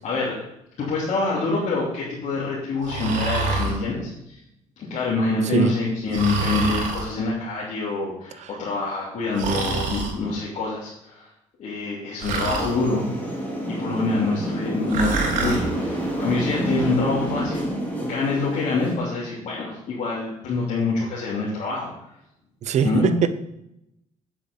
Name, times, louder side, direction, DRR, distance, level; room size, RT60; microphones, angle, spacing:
voice 1, 0.0-0.4 0.8-4.4 4.9-11.3 11.6-13.3 13.8-17.6 18.0-21.9 22.8-23.1, left 3 dB, 60° left, -6 dB, 3.0 m, -26 dB
Breathing, 2.8-3.8 6.1-7.1 9.4-10.1 12.2-12.7 14.9-15.6, right 3 dB, 75° right, 4.0 m, -26 dB
sound 1, 12.4-19.0, right 1 dB, 10° left, 3.1 m, -28 dB
voice 2, 22.6-23.3, right 8 dB, 60° right, 12 dB, 0.8 m, -22 dB
9.1 x 7.8 x 5.4 m, 0.81 s
cardioid pair, 115°, 13 cm